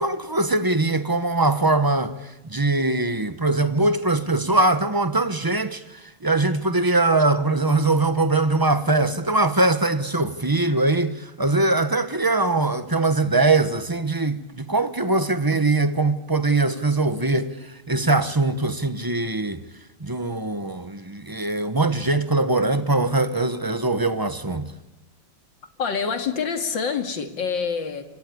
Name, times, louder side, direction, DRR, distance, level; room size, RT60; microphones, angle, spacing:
voice 1, 0.0-17.5 17.9-19.6 20.0-24.7, right 2 dB, 15° right, 0.8 m, -22 dB
voice 2, 25.8-28.0, left 6 dB, 70° left, 2.9 m, -26 dB
26.5 x 26.0 x 8.6 m
omnidirectional pair, 2.1 m